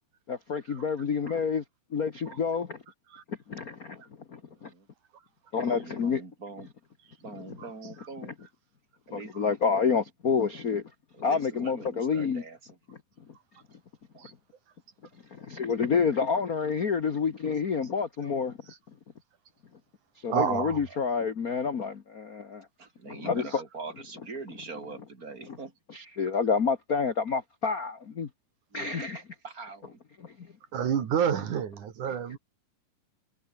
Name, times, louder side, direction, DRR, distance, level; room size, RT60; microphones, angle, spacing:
voice 1, 0.3-1.6 1.9-2.8 3.3-4.0 4.3-4.7 5.5-6.2 9.1-10.8 11.2-12.4 15.3-18.6 20.2-22.7 23.1-23.5 25.9-28.3 28.7-29.2 30.2-30.5, left 5 dB, 60° left, 0.9 m, -28 dB
voice 2, 4.4-4.9 5.7-6.7 7.2-8.3 9.1-9.3 11.1-12.8 20.9-21.1 22.8-25.8 28.7-30.0, right 4 dB, 25° right, 3.7 m, -43 dB
voice 3, 20.3-20.8 30.7-32.4, right 8 dB, 65° right, 3.6 m, -28 dB
omnidirectional pair, 3.8 m